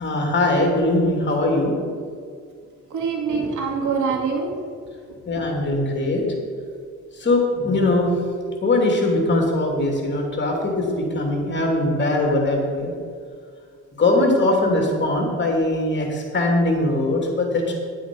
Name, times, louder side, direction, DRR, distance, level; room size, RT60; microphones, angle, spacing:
voice 1, 0.0-1.7 5.3-6.2 7.2-8.1 8.6-12.9 14.0-17.7, left 2 dB, 35° left, 1 dB, 2.8 m, -21 dB
voice 2, 2.9-4.5 5.1-5.6, right 5 dB, 75° right, 0 dB, 2.2 m, -25 dB
9.8 x 8.5 x 5.4 m, 2.1 s
cardioid pair, 90°, 30 cm